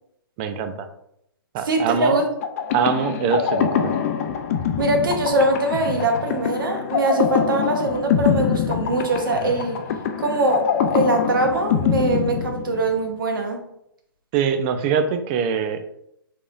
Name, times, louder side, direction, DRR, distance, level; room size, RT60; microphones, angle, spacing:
voice 1, 0.4-0.9 1.5-2.1 2.7-3.9 14.3-15.8, right 7 dB, 30° right, 8 dB, 0.5 m, -23 dB
voice 2, 1.6-2.3 4.8-9.8 10.2-13.6, right 2 dB, 60° right, 3 dB, 1.0 m, -22 dB
sound 1, 2.4-13.1, left 7 dB, 40° left, 0.4 m, -24 dB
4.8 x 3.6 x 2.5 m, 0.76 s
figure-of-eight pair, 130°, 13 cm